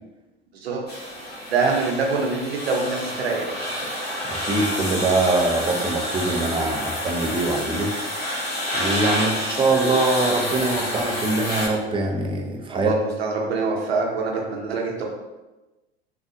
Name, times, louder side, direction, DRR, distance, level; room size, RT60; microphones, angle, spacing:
sound 1, 0.9-11.7, equal, 30° left, 1.5 m, -28 dB
voice 1, 1.5-3.6 9.1-9.9 12.7-15.0, right 4 dB, 75° right, 0 dB, 0.9 m, -25 dB
voice 2, 4.2-7.9 8.7-12.9, right 2 dB, 15° right, 2 dB, 0.7 m, -23 dB
5.5 x 2.5 x 2.7 m, 1.1 s
figure-of-eight pair, 75°, 31 cm